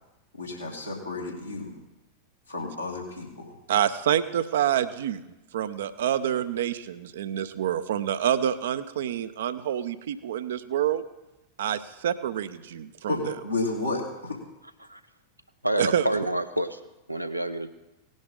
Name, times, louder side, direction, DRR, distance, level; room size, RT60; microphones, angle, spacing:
voice 1, 0.4-1.8 2.5-3.5 13.1-14.4, left 2 dB, 85° left, -4 dB, 2.9 m, -32 dB
voice 2, 3.7-5.2 5.5-11.0 11.6-13.3 15.8-16.0, right 10 dB, 60° right, 12 dB, 0.7 m, -27 dB
voice 3, 15.6-16.8 17.1-17.7, right 1 dB, 90° right, 9 dB, 0.7 m, -28 dB
18.0 x 10.5 x 3.7 m, 0.99 s
figure-of-eight pair, 90°, 0 cm